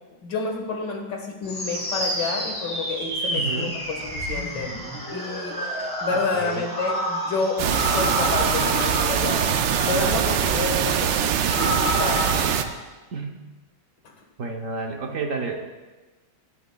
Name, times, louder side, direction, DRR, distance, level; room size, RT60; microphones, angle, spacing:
voice 1, 0.2-4.7 5.1-5.6 6.0-9.5 9.8-12.2 14.0-14.1, left 3 dB, 70° left, 2 dB, 2.2 m, -29 dB
sound 1, 1.4-12.7, equal, 10° left, 2.1 m, -29 dB
voice 2, 3.3-3.8 6.1-6.7 13.1-13.4 14.4-15.8, right 4 dB, 55° right, 2 dB, 1.0 m, -31 dB
sound 2, 7.6-12.6, right 9 dB, 85° right, 1.3 m, -23 dB
20.5 x 8.4 x 2.3 m, 1.2 s
omnidirectional pair, 2.0 m